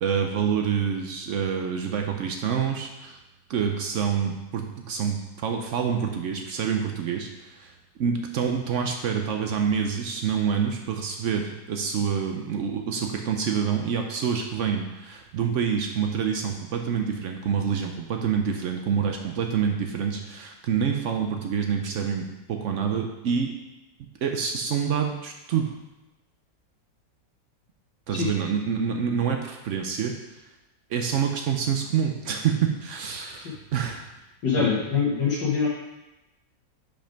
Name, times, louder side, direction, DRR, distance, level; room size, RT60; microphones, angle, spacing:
voice 1, 0.0-3.2 3.5-7.7 8.0-23.5 24.2-25.7 28.1-30.2 30.9-34.0 34.5-34.7, right 7 dB, 75° right, 3 dB, 0.7 m, -27 dB
voice 2, 34.4-35.7, left 5 dB, 70° left, -6 dB, 2.0 m, -24 dB
5.6 x 5.2 x 5.1 m, 1.0 s
omnidirectional pair, 2.0 m